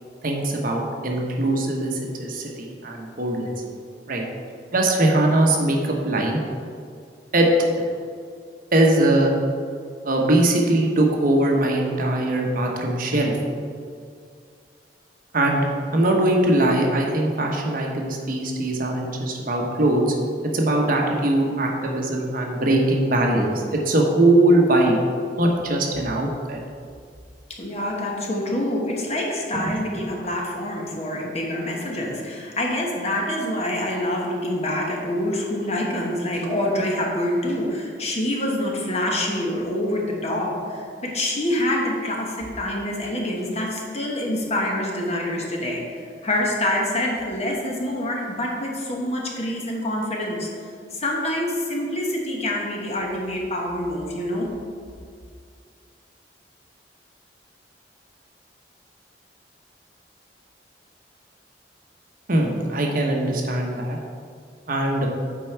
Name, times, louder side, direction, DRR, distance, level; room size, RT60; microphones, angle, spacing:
voice 1, 0.2-3.5 4.1-4.2 4.7-6.4 7.3-7.5 8.7-9.3 10.0-13.3 15.3-20.1 20.5-25.0 25.4-26.6 29.5-29.8 62.3-64.0 64.7-65.1, right 1 dB, 55° right, 0 dB, 1.0 m, -21 dB
voice 2, 27.6-45.8 46.2-50.5 50.9-54.5, left 1 dB, 40° left, -1 dB, 1.1 m, -26 dB
8.2 x 4.5 x 4.5 m, 2.2 s
head